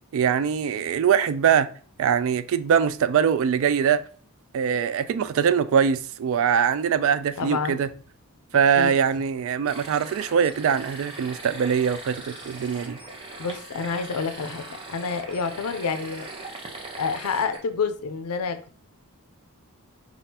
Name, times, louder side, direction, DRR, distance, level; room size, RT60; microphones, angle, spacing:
voice 1, 0.1-1.7 2.0-4.0 4.5-7.9 8.5-13.0, right 7 dB, 60° right, 0.3 m, -22 dB
voice 2, 7.4-7.8 8.8-8.9 13.4-16.3 17.0-18.8, left 5 dB, 80° left, 0.5 m, -28 dB
sound 1, 9.6-17.6, right 2 dB, 25° right, 0.7 m, -40 dB
5.3 x 2.4 x 2.7 m
head